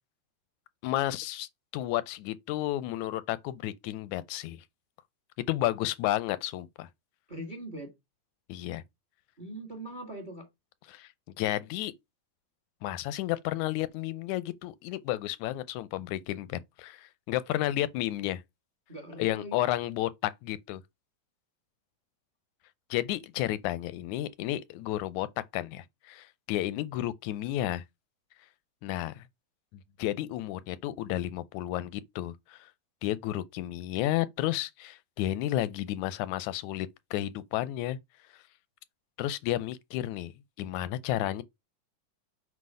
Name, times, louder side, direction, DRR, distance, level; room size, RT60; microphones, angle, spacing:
voice 1, 0.8-4.6 5.5-6.9 8.5-8.8 10.9-11.1 11.4-11.9 12.8-18.4 19.2-20.8 22.9-25.3 25.5-27.8 28.8-29.2 30.0-32.7 33.0-38.0 39.2-40.3 40.6-41.4, left 14 dB, 85° left, 1.9 m, -32 dB
voice 2, 7.3-7.9 9.4-10.5 18.9-19.6, right 1 dB, 25° right, 1.0 m, -41 dB
7.8 x 3.0 x 5.4 m
omnidirectional pair, 3.4 m